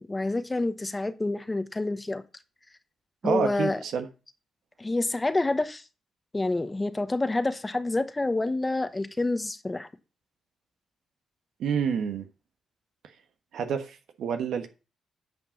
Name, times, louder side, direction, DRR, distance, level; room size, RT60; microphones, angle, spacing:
voice 1, 0.0-2.2 3.2-3.8 4.8-5.8 6.3-9.9, left 2 dB, 20° left, 1.1 m, -28 dB
voice 2, 3.2-4.1 11.6-12.3 13.5-14.7, right 7 dB, 75° right, 1.3 m, -28 dB
9.6 x 5.2 x 5.4 m
supercardioid pair, 55°, 0 cm